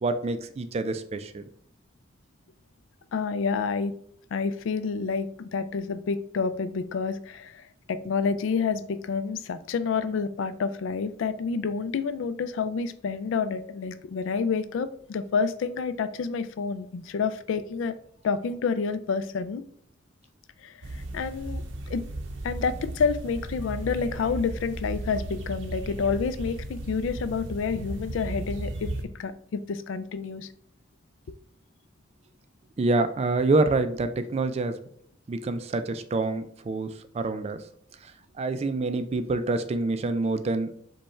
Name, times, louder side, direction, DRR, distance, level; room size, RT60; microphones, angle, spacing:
voice 1, 0.0-1.4 32.8-34.7 35.3-37.6 38.4-40.7, right 3 dB, 30° right, 10 dB, 0.3 m, -26 dB
voice 2, 3.1-3.9 4.3-7.5 7.9-17.9 18.2-19.6 20.6-20.7 21.1-21.6 21.9-22.0 22.4-28.9 29.2-30.5, left 5 dB, 75° left, 14 dB, 0.3 m, -29 dB
sound 1, 20.8-29.0, right 1 dB, 70° right, 0.6 m, -35 dB
5.2 x 2.3 x 4.3 m, 0.65 s
head